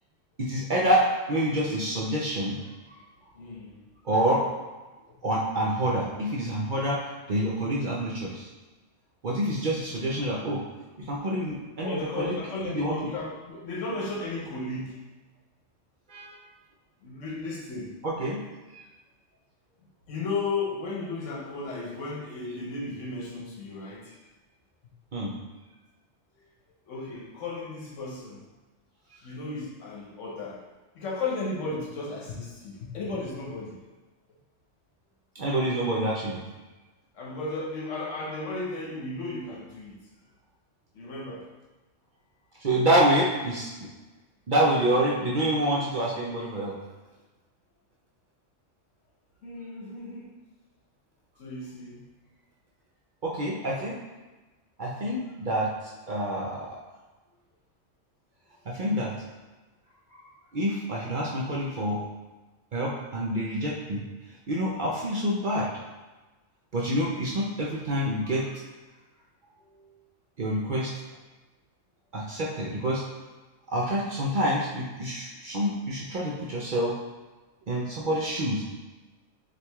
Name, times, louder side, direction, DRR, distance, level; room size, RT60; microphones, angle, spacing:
voice 1, 0.4-2.6 4.0-4.4 5.2-7.0 7.3-8.5 9.2-10.6 11.0-12.4 12.6-13.0 16.1-16.4 18.0-18.4 18.7-18.8 25.1-25.3 35.3-36.4 42.6-43.9 44.5-46.7 53.2-54.0 54.8-56.7 58.7-59.1 60.5-62.0 62.7-64.0 64.5-65.7 66.7-68.5 70.4-70.9 72.1-73.0 73.7-76.9 77.7-78.6, right 1 dB, 55° right, -4 dB, 0.6 m, -27 dB
voice 2, 3.3-3.8 11.8-15.0 17.0-17.9 20.1-24.1 26.3-26.4 26.9-28.5 29.2-30.6 30.9-33.8 37.1-40.0 40.9-41.5 49.4-50.3 51.4-52.1 69.6-70.0, left 3 dB, 75° left, -3 dB, 1.2 m, -34 dB
4.5 x 2.5 x 3.3 m, 1.2 s
omnidirectional pair, 1.3 m